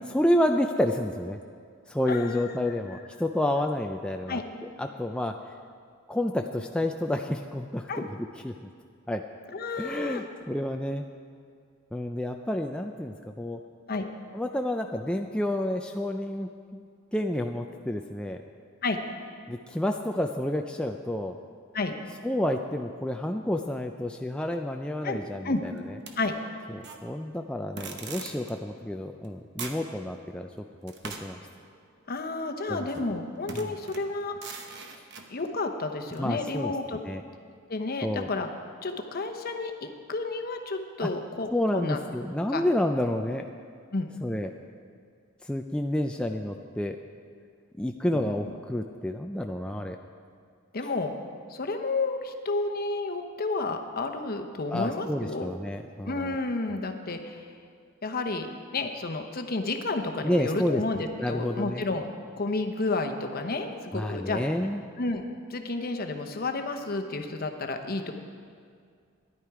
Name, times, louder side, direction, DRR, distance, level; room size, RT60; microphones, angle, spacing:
voice 1, 0.1-1.4 1.9-4.4 4.8-5.3 6.1-8.1 8.4-8.7 9.1-9.2 9.8-11.1 11.9-13.6 14.3-16.8 17.1-18.4 19.5-21.4 22.2-26.0 26.7-30.5 30.8-31.4 32.7-33.0 33.5-33.7 36.2-37.2 38.0-38.3 41.0-41.1 41.5-43.4 44.2-44.5 45.4-47.0 47.8-50.0 54.7-56.4 60.2-61.8 63.9-64.8, left 1 dB, 5° left, 3 dB, 0.3 m, -29 dB
voice 2, 2.1-3.0 4.3-4.4 7.9-8.1 9.5-10.2 13.9-14.0 18.8-19.0 21.7-21.9 25.0-25.2 25.4-25.6 26.2-26.4 32.1-34.4 35.3-37.0 37.7-38.5 38.8-42.0 42.5-42.6 43.9-44.1 48.1-48.3 50.7-51.1 51.5-55.5 56.0-57.5 58.0-58.5 58.7-62.1 62.4-64.4 65.0-65.2 65.5-68.1, left 3 dB, 45° left, 5 dB, 0.9 m, -31 dB
sound 1, 26.1-27.0 27.8-28.5 29.2-29.3 29.6-29.9 30.9-32.3 32.9-33.1 33.5-35.3 36.1-36.2, right 4 dB, 60° right, 1.0 m, -42 dB
13.0 x 11.0 x 4.8 m, 2.2 s
head